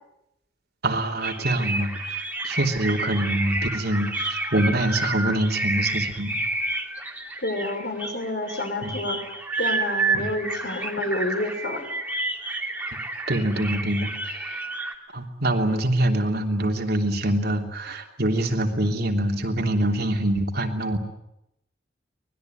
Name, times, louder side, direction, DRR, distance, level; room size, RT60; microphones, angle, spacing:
voice 1, 0.8-6.4 8.8-8.9 10.1-10.3 13.3-14.5 15.1-21.0, right 1 dB, 60° right, 3 dB, 3.1 m, -25 dB
sound 1, 1.2-14.9, right 2 dB, 10° right, 2.8 m, -30 dB
voice 2, 7.4-9.2 9.6-11.8, left 2 dB, 60° left, 5 dB, 6.5 m, -29 dB
25.0 x 20.5 x 9.4 m, 0.83 s
head